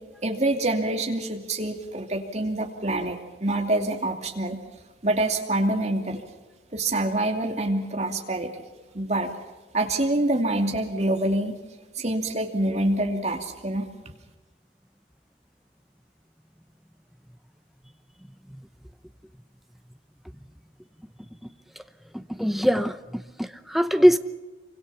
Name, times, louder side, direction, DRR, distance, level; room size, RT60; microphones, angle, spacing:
voice 1, 0.2-4.6 5.0-6.2 6.7-8.6 8.9-9.4 9.7-11.5 11.9-13.9, right 1 dB, 40° right, 2.7 m, -26 dB
voice 2, 22.1-24.2, equal, ahead, 0.8 m, -22 dB
27.0 x 25.0 x 5.8 m
head